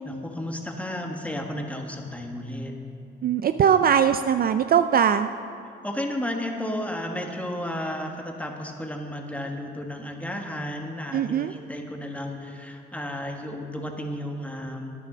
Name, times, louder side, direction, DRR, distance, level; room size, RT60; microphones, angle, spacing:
voice 1, 0.0-2.7 5.8-14.9, left 1 dB, 5° left, 2 dB, 1.6 m, -33 dB
voice 2, 3.2-5.3 11.1-11.5, right 8 dB, 50° right, 10 dB, 0.4 m, -21 dB
11.0 x 10.0 x 6.2 m, 2.4 s
cardioid pair, 90°, 20 cm